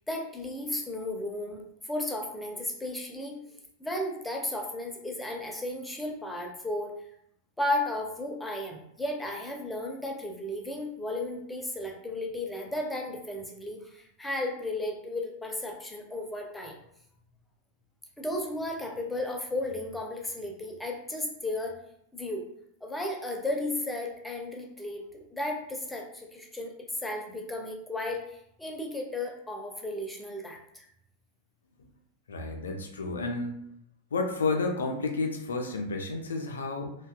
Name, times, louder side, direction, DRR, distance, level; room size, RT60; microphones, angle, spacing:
voice 1, 0.1-3.4 3.8-6.9 7.6-16.7 18.2-21.8 22.1-22.4 22.8-30.9, left 1 dB, 5° left, 0 dB, 0.5 m, -34 dB
voice 2, 32.3-33.5 34.1-36.9, left 3 dB, 70° left, 3 dB, 0.4 m, -31 dB
2.7 x 2.2 x 2.2 m, 0.72 s
figure-of-eight pair, 90°, 0 cm